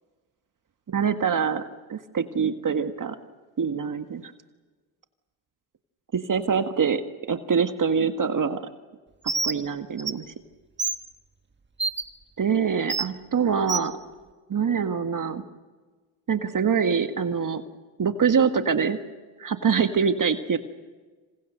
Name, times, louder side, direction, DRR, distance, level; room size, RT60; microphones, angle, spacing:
voice 1, 0.9-1.6 1.9-3.2 3.6-4.3 6.1-7.0 7.3-8.6 9.4-10.2 12.4-13.9 14.5-15.4 16.3-17.6 18.0-19.0 19.4-20.6, right 6 dB, 40° right, 8 dB, 1.7 m, -24 dB
Bird, 9.3-9.6 10.0-10.1 10.8-11.0 11.8-12.0 12.9-13.1 13.7-13.9, right 4 dB, 25° right, 1.6 m, -26 dB
27.5 x 27.0 x 6.7 m, 1.3 s
supercardioid pair, 55°, 48 cm